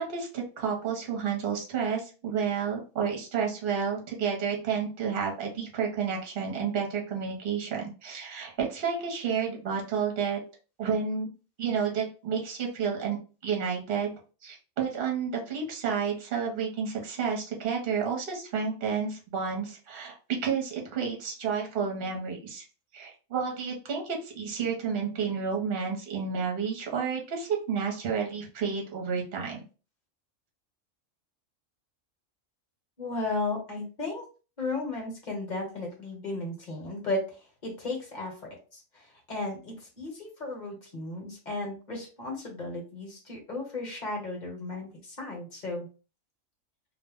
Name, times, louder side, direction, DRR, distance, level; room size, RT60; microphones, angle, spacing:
voice 1, 0.0-10.4 10.8-11.3 11.6-13.2 13.4-14.1 14.4-20.1 20.4-22.6 22.9-29.6, right 6 dB, 55° right, 0 dB, 0.9 m, -30 dB
voice 2, 33.0-34.2 34.6-37.4 37.6-38.3 38.7-45.9, left 2 dB, 40° left, -1 dB, 1.0 m, -35 dB
2.4 x 2.1 x 3.4 m, 0.35 s
omnidirectional pair, 1.3 m